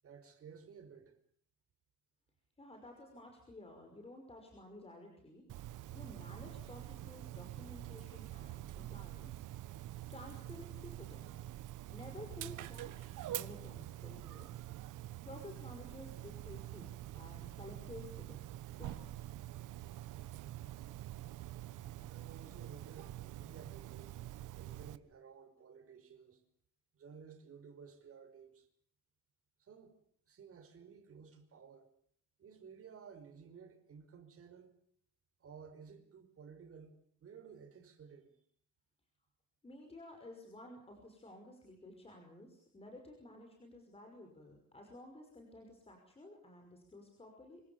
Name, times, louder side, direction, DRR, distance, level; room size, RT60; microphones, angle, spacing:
voice 1, 0.0-1.1 22.0-24.2 24.6-26.4 26.9-28.7 29.6-30.0 30.3-31.9 32.4-34.7 35.4-38.4, right 6 dB, 50° right, 5.5 m, -55 dB
voice 2, 2.6-5.4 5.9-9.4 10.1-11.5 11.9-14.6 15.2-19.1 39.6-47.6, left 1 dB, 20° left, 5.6 m, -53 dB
Dog, 5.5-25.0, right 14 dB, 90° right, 1.4 m, -46 dB
26.5 x 25.5 x 7.2 m
cardioid pair, 150°, 30 cm